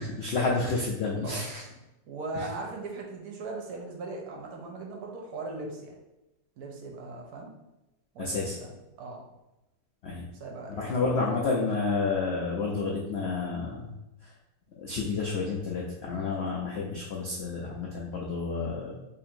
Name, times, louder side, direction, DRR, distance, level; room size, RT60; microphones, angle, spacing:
voice 1, 0.0-1.6 2.3-2.5 8.2-8.6 10.0-10.3 10.8-13.9 14.2-14.3 14.8-18.9, left 4 dB, 80° left, -3 dB, 0.5 m, -30 dB
voice 2, 2.1-5.9 6.6-7.5 8.1-8.7 9.0-9.2 10.4-11.0, right 3 dB, 70° right, 1 dB, 1.1 m, -39 dB
3.0 x 2.5 x 4.4 m, 0.96 s
omnidirectional pair, 1.8 m